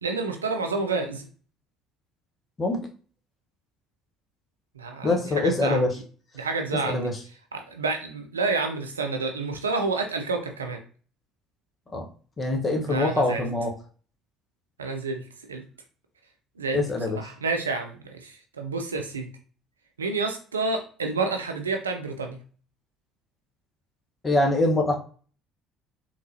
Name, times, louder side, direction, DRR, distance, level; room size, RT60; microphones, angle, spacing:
voice 1, 0.0-1.2 4.7-5.9 6.4-7.1 7.5-10.8 12.8-13.4 14.8-15.6 16.6-19.3 20.0-22.4, right 3 dB, 85° right, 5 dB, 0.5 m, -29 dB
voice 2, 5.0-5.9 6.8-7.2 11.9-12.1 12.4-13.7 16.7-17.2 24.2-25.0, left 2 dB, 30° left, 2 dB, 1.1 m, -24 dB
3.8 x 3.0 x 2.7 m, 0.40 s
figure-of-eight pair, 55°, 0 cm